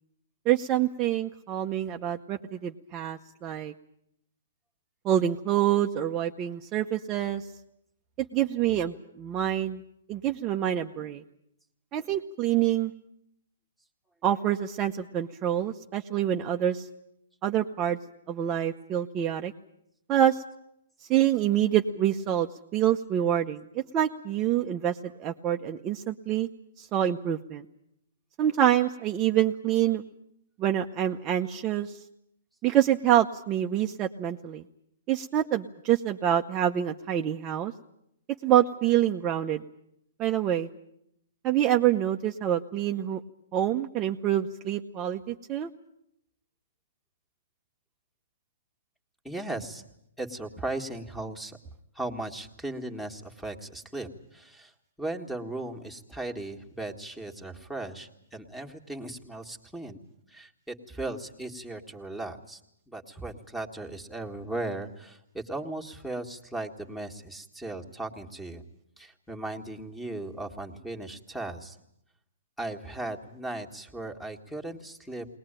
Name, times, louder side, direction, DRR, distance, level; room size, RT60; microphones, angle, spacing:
voice 1, 0.5-3.7 5.0-7.4 8.3-9.8 10.1-11.2 11.9-12.9 14.2-16.9 17.4-18.0 18.3-19.5 20.1-20.4 21.1-26.5 26.8-27.6 28.4-30.0 30.6-32.0 32.6-34.6 35.1-37.7 38.4-39.6 40.2-40.7 41.4-43.2 43.5-45.7, right 11 dB, 25° right, 3 dB, 0.8 m, -26 dB
voice 2, 49.2-49.8 50.2-51.6 52.0-54.7 55.0-60.0 60.3-62.6 62.9-68.6 69.0-71.8 72.6-75.3, right 2 dB, ahead, 6 dB, 1.8 m, -37 dB
21.5 x 20.0 x 9.0 m, 0.77 s
hypercardioid pair, 145°, 0 cm